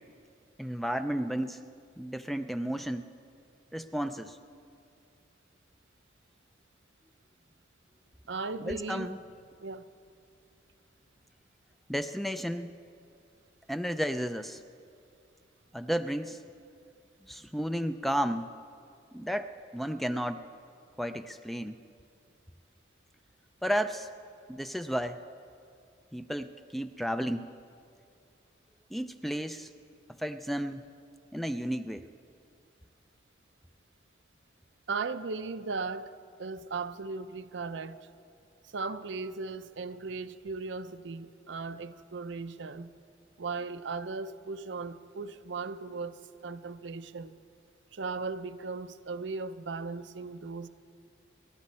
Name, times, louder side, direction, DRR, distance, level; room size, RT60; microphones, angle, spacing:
voice 1, 0.6-1.6 2.0-3.1 3.7-4.4 8.6-9.2 11.9-12.7 13.7-14.6 15.7-16.4 17.3-18.5 19.1-20.4 21.0-21.8 23.6-24.1 24.5-25.2 26.1-27.5 28.9-29.7 30.2-30.8 31.3-32.1, equal, ahead, 0.4 m, -32 dB
voice 2, 8.3-9.1 9.6-9.9 34.9-36.1 36.4-38.1 38.7-42.9 43.4-47.4 47.9-50.7, right 4 dB, 80° right, 0.6 m, -37 dB
29.0 x 11.5 x 4.3 m
head